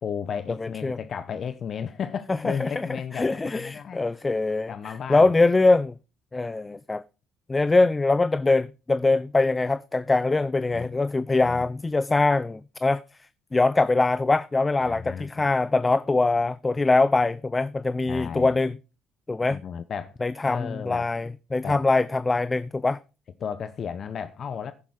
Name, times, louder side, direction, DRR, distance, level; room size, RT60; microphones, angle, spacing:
voice 1, 0.0-4.0 4.7-5.3 10.7-10.9 11.3-11.7 14.8-15.3 18.1-18.6 19.5-20.2 20.5-21.1 21.6-21.8 23.4-24.7, left 7 dB, 50° left, 0.9 m, -34 dB
voice 2, 0.6-1.0 2.4-5.9 6.3-7.0 7.5-13.0 13.5-18.8 19.3-19.6 20.2-23.0, left 3 dB, 20° left, 0.5 m, -23 dB
10.5 x 9.8 x 4.8 m
supercardioid pair, 70°, 0 cm